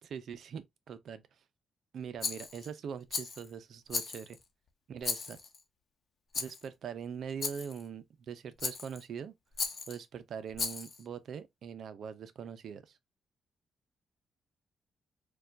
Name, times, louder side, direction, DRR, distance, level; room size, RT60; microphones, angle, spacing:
voice 1, 0.0-1.2 1.9-4.4 4.9-5.4 6.4-9.3 9.9-13.0, right 7 dB, 70° right, 0.5 m, -42 dB
Rattle, 2.2-2.7 3.1-3.5 3.9-4.4 5.0-5.6 6.3-6.7 7.4-7.8 8.6-9.0 9.6-10.0 10.5-11.0, left 5 dB, 55° left, 0.8 m, -36 dB
4.2 x 2.3 x 2.6 m
cardioid pair, 70°, 0 cm